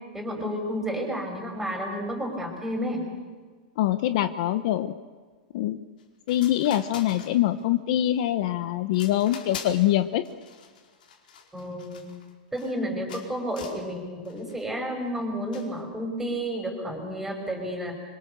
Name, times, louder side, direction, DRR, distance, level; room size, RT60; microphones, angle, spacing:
voice 1, 0.1-3.1 11.5-12.1 12.5-18.0, equal, 5° right, 3 dB, 5.5 m, -31 dB
voice 2, 3.8-4.9 5.5-5.8 6.3-10.3, left 13 dB, 50° left, 11 dB, 1.0 m, -24 dB
sound 1, 6.0-6.1 6.3-7.7 8.1-8.5 8.9-9.9 10.2-12.8 13.1-13.9 14.3-14.7 15.5-15.8, left 7 dB, 80° left, 4.8 m, -44 dB
26.0 x 25.5 x 6.8 m, 1.5 s
supercardioid pair, 160°, 5 cm